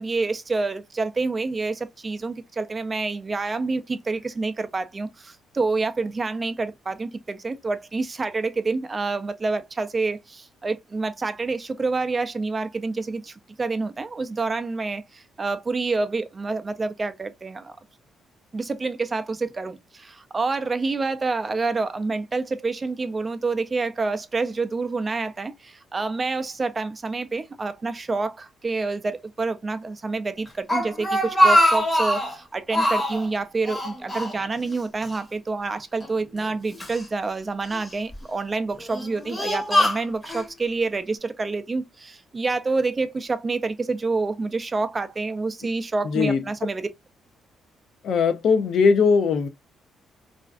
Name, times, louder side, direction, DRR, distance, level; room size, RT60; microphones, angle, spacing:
voice 1, 0.0-17.8 18.5-46.9, right 3 dB, 30° right, 0.3 m, -28 dB
Speech, 30.5-32.4 32.7-33.3 33.7-34.8 35.0-35.2 36.0-37.0 37.7-38.1 38.8-40.5, equal, 20° left, 0.8 m, -22 dB
voice 2, 46.0-46.4 48.0-49.5, left 5 dB, 70° left, 0.4 m, -19 dB
2.4 x 2.3 x 2.3 m
cardioid pair, 90°, 0 cm